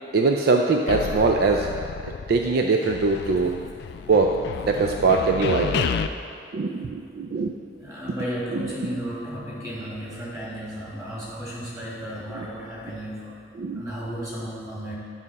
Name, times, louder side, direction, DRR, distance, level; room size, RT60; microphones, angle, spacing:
voice 1, 0.1-1.7 2.3-3.6 4.1-4.4 4.6-5.9 6.5-7.5 8.5-8.7 12.3-12.5 13.5-13.8, right 4 dB, 55° right, 3 dB, 0.4 m, -22 dB
sound 1, 0.9-2.5 2.8-6.1, left 6 dB, 60° left, 0.3 m, -31 dB
voice 2, 7.8-13.4 13.7-15.0, equal, 20° right, -7 dB, 2.1 m, -34 dB
9.7 x 5.5 x 4.1 m, 2.4 s
head